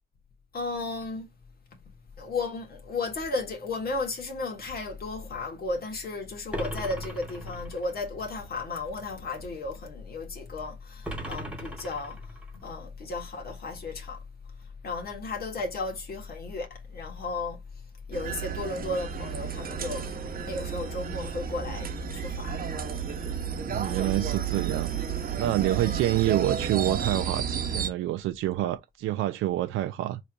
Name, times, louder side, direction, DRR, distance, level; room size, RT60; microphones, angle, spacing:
voice 1, 0.5-1.3 2.2-14.2 14.6-17.6 18.1-22.6 25.6-26.0, left 3 dB, 50° left, 1.7 m, -34 dB
sound 1, 6.5-8.0 11.0-12.6, equal, 5° right, 1.5 m, -37 dB
sound 2, 18.1-27.9, right 7 dB, 45° right, 1.0 m, -32 dB
voice 2, 23.7-24.9 25.3-30.2, right 14 dB, 85° right, 0.5 m, -27 dB
5.3 x 3.2 x 2.6 m
cardioid pair, 90°, 20 cm